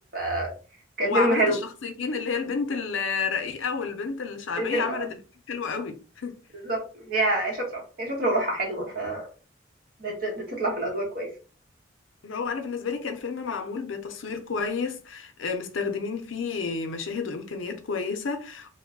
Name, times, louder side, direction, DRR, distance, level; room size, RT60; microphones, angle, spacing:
voice 1, 0.1-0.5 1.0-1.5 4.6-5.1 6.5-9.3 10.0-11.3, right 1 dB, 45° right, 1.0 m, -27 dB
voice 2, 1.0-5.2 5.5-6.4 12.2-18.7, left 5 dB, 80° left, 0.5 m, -30 dB
2.3 x 2.1 x 3.5 m
head